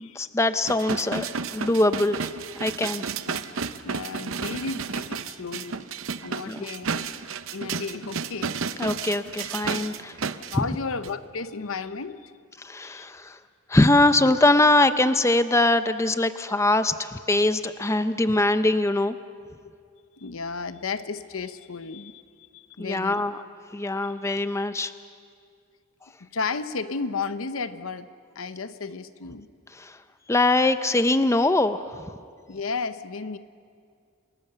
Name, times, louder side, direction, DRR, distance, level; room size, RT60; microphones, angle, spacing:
voice 1, 0.0-2.3 2.6-3.0 6.5-6.6 8.8-10.2 10.5-10.6 12.6-13.4 13.7-19.2 22.8-23.4 23.7-24.9 29.8-30.0 30.3-32.1, left 2 dB, 15° left, 11 dB, 0.5 m, -22 dB
sound 1, 0.6-10.6 11.0-11.1, right 5 dB, 75° right, 0.7 m, -32 dB
voice 2, 3.8-5.9 6.2-7.1 7.5-8.6 10.5-12.3 12.8-13.0 18.3-18.4 20.2-22.2 22.5-23.2 26.2-28.1 28.3-29.5 32.5-33.4, left 4 dB, 90° left, 12 dB, 0.9 m, -33 dB
28.5 x 19.0 x 6.8 m, 2.2 s
head